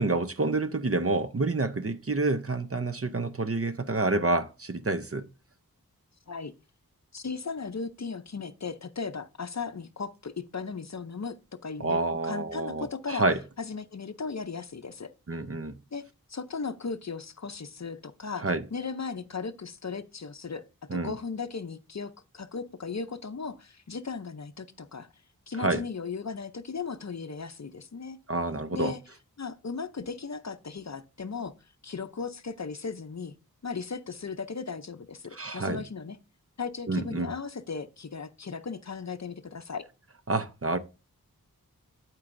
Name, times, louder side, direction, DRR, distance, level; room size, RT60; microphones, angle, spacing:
voice 1, 0.0-5.3 11.8-13.4 15.3-15.8 18.4-18.6 20.9-21.1 25.6-25.8 28.3-28.9 35.3-35.8 36.9-37.3 40.3-40.8, right 3 dB, 40° right, 0.6 m, -28 dB
voice 2, 7.1-11.4 11.6-13.2 13.6-15.1 15.9-16.0 16.3-20.6 20.9-25.1 25.5-28.2 28.7-29.0 29.4-31.5 31.8-33.3 33.6-36.2 36.6-39.9, left 5 dB, 50° left, 0.6 m, -36 dB
12.0 x 4.6 x 2.6 m
wide cardioid pair, 45°, 37 cm